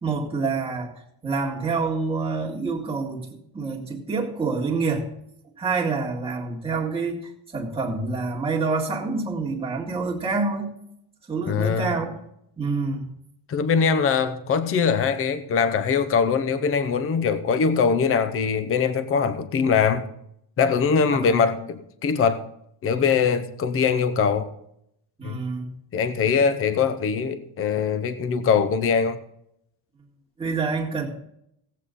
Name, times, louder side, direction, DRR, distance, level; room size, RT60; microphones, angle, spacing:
voice 1, 0.0-5.1 5.6-10.7 11.3-12.2 12.6-13.1 21.2-21.4 25.2-25.7 30.4-31.1, right 4 dB, 10° right, 1.9 m, -27 dB
voice 2, 11.5-11.9 13.5-20.1 20.6-22.4 22.8-24.5 25.2-25.4 25.9-29.2, left 6 dB, 30° left, 0.7 m, -22 dB
16.5 x 8.3 x 3.8 m
cardioid pair, 175°, 46 cm